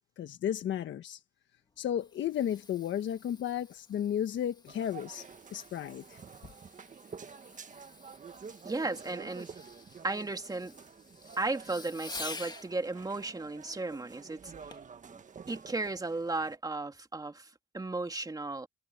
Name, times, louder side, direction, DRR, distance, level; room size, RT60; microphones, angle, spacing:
voice 1, 0.2-1.2 1.8-6.2, left 10 dB, 70° left, 1.4 m, -33 dB
Fireworks, 1.7-12.7 14.7-15.0 15.6-15.7, left 3 dB, 20° left, 1.6 m, -49 dB
sound 1, 4.7-16.6, right 6 dB, 40° right, 1.6 m, -49 dB
voice 2, 8.6-9.5 10.0-10.7 11.4-14.5 15.5-17.5 17.7-18.7, right 3 dB, 20° right, 2.8 m, -35 dB
cardioid pair, 90°, 20 cm